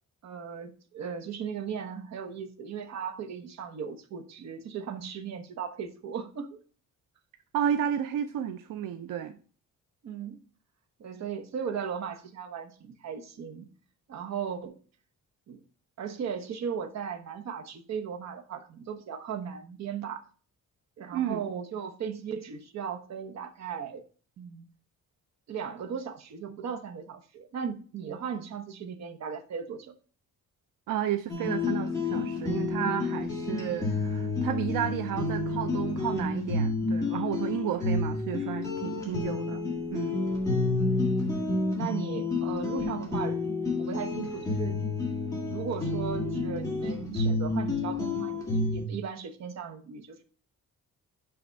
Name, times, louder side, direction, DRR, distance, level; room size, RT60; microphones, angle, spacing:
voice 1, 0.2-6.6 10.0-10.4 11.0-13.7 14.1-14.7 15.5-15.6 16.0-20.2 21.0-24.0 24.4-24.6 25.5-30.0 39.0-39.4 40.9-41.2 41.7-43.4 43.7-44.8 45.5-50.2, right 7 dB, 55° right, 5 dB, 1.1 m, -37 dB
voice 2, 7.5-9.4 21.1-21.4 30.9-39.6 39.9-40.1, right 10 dB, 85° right, 9 dB, 0.6 m, -32 dB
sound 1, 31.3-48.9, left 3 dB, 10° left, 1.8 m, -30 dB
5.9 x 5.1 x 5.2 m, 0.40 s
wide cardioid pair, 175°, 32 cm